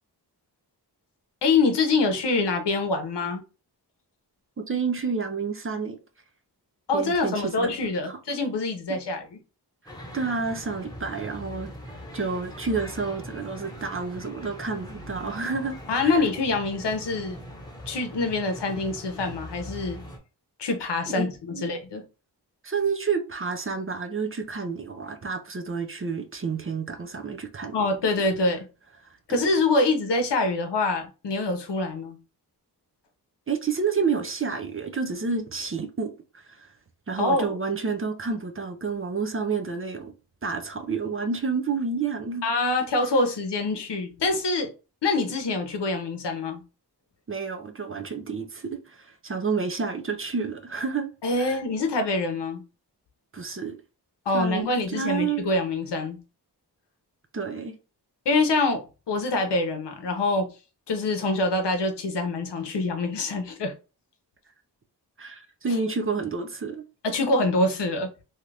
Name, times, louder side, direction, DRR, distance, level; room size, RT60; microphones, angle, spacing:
voice 1, 1.4-3.4 6.9-9.4 15.9-17.4 17.9-20.0 20.6-22.0 27.7-28.7 29.3-32.2 37.2-37.4 42.4-44.7 45.0-46.6 51.2-52.6 54.3-56.2 58.3-60.5 60.9-63.7 67.0-68.1, left 3 dB, 80° left, 0.8 m, -25 dB
voice 2, 4.6-6.0 6.9-7.7 8.1-8.2 10.1-11.7 12.1-16.1 21.1-21.2 21.5-21.7 22.6-27.8 29.0-29.4 33.5-36.7 37.1-40.1 40.4-42.4 47.3-51.1 51.4-51.6 53.3-53.8 54.3-55.5 57.3-57.8 65.2-66.8, right 5 dB, 35° right, 0.4 m, -29 dB
sound 1, 9.9-20.2, equal, 10° left, 0.9 m, -41 dB
2.8 x 2.4 x 3.2 m
wide cardioid pair, 125°, 41 cm